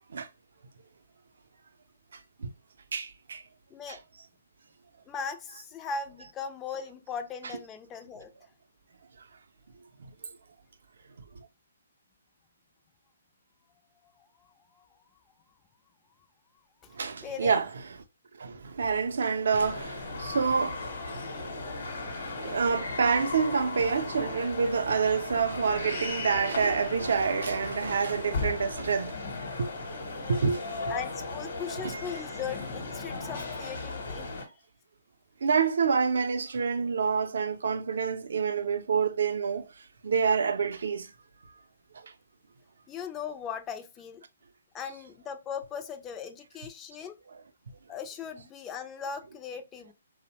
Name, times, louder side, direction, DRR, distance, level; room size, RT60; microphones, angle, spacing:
voice 1, 2.9-3.4 17.0-17.7 18.4-20.8 21.1-29.2 29.6-29.7 30.3-30.6 31.8-32.0 35.4-39.6 40.0-41.1, right 5 dB, 70° right, 0.4 m, -27 dB
voice 2, 5.1-8.3 14.2-14.9 16.8-17.5 30.9-34.3 42.9-44.2 44.7-47.2 47.9-49.9, left 6 dB, 15° left, 0.3 m, -39 dB
sound 1, 19.6-34.4, left 3 dB, 60° left, 0.9 m, -36 dB
2.7 x 2.0 x 2.9 m
hypercardioid pair, 145°, 0 cm